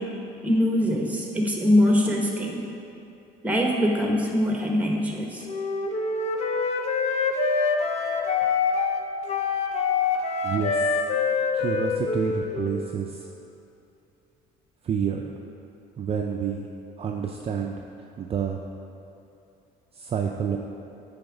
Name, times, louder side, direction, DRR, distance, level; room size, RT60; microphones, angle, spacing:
voice 1, 0.4-2.6 3.4-5.4, left 1 dB, 10° right, 0 dB, 1.1 m, -23 dB
Wind instrument woodwind instrument, 5.5-12.9, left 4 dB, 40° left, 0.6 m, -25 dB
voice 2, 11.5-13.1 14.9-15.3 16.0-16.7 17.0-17.8 18.2-18.6 20.0-20.6, right 7 dB, 35° right, 1 dB, 0.4 m, -28 dB
8.7 x 3.5 x 5.0 m, 2.8 s
cardioid pair, 110°, 17 cm